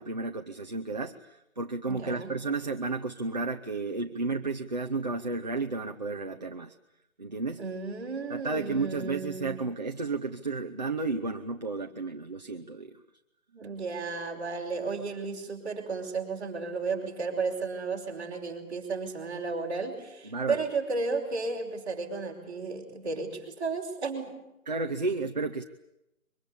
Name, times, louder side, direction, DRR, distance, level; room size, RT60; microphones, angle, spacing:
voice 1, 0.0-6.7 7.2-7.6 8.3-13.0 20.2-20.6 24.7-25.6, right 3 dB, 30° right, 4 dB, 0.9 m, -32 dB
voice 2, 1.9-2.3 7.6-9.6 13.5-24.3, right 4 dB, 15° right, -6 dB, 5.3 m, -33 dB
24.0 x 23.5 x 8.5 m, 0.89 s
figure-of-eight pair, 170°, 42 cm